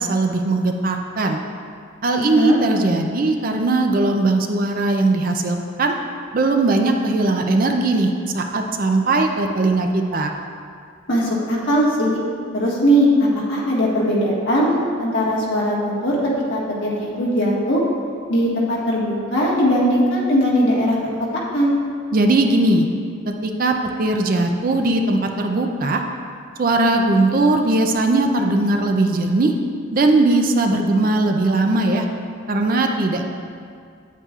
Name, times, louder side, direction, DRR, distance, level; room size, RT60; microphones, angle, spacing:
voice 1, 0.0-1.4 2.0-6.0 6.3-10.3 22.1-22.9 23.4-26.0 26.6-29.5 29.9-32.1 32.5-33.3, right 2 dB, 45° right, 4 dB, 0.4 m, -19 dB
voice 2, 2.2-2.6 11.1-12.2 12.5-16.2 16.5-17.8 18.3-21.0 21.5-21.7, equal, 65° left, -5 dB, 1.5 m, -19 dB
8.5 x 8.1 x 2.4 m, 2.2 s
head